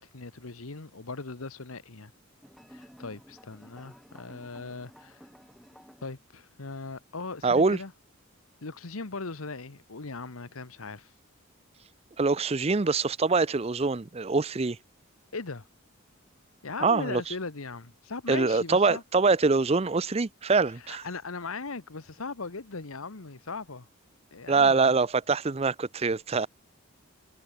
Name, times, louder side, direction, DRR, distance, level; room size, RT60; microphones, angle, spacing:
voice 1, 0.0-2.1 2.7-5.2 6.0-7.9 8.6-11.1 15.3-15.7 16.6-19.0 20.8-23.9 24.3-24.9, left 3 dB, 80° left, 1.3 m, -39 dB
sound 1, 2.4-6.1, equal, ahead, 7.2 m, -53 dB
voice 2, 7.4-7.8 12.2-14.8 16.8-17.3 18.3-21.0 24.5-26.5, right 4 dB, 30° right, 0.5 m, -24 dB
head